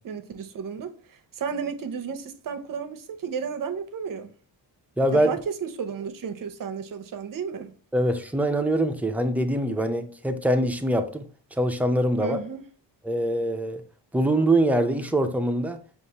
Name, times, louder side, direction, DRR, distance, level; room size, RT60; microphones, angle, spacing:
voice 1, 0.0-4.3 5.1-7.7 12.2-12.6, right 6 dB, 50° right, 0.6 m, -33 dB
voice 2, 5.0-5.3 7.9-11.2 11.6-12.4 13.0-13.8 14.1-16.0, right 1 dB, 5° right, 0.3 m, -23 dB
5.2 x 2.4 x 2.8 m
cardioid pair, 95°, 43 cm